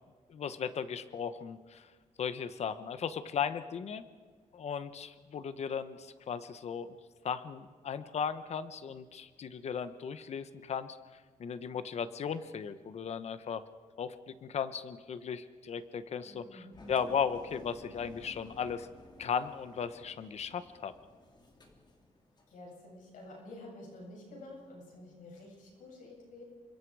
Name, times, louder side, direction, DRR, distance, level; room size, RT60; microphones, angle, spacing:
voice 1, 0.3-1.9 2.2-4.0 4.5-6.9 7.2-11.0 11.4-13.6 14.0-18.9 19.2-20.9, left 7 dB, 55° left, 12 dB, 1.1 m, -36 dB
voice 2, 16.2-16.8 22.5-26.4, left 1 dB, 90° left, -1 dB, 7.6 m, -50 dB
Engine, 16.7-22.6, left 1 dB, 35° left, 2.9 m, -55 dB
28.5 x 25.0 x 4.9 m, 1.5 s
wide cardioid pair, 150°, 13 cm